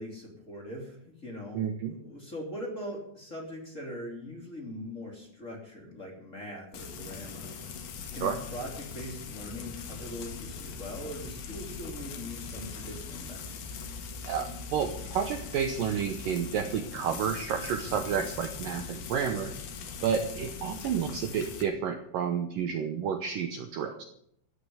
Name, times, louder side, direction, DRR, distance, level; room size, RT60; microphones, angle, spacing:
voice 1, 0.0-1.6 1.9-7.5 8.1-13.8, equal, 20° left, -1 dB, 2.8 m, -41 dB
voice 2, 1.5-1.9 8.2-8.4 14.3-19.5 20.0-24.0, right 7 dB, 85° right, 5 dB, 1.9 m, -30 dB
Frying (food), 6.7-21.6, left 5 dB, 75° left, 4.0 m, -41 dB
15.0 x 9.7 x 7.9 m, 0.71 s
omnidirectional pair, 5.3 m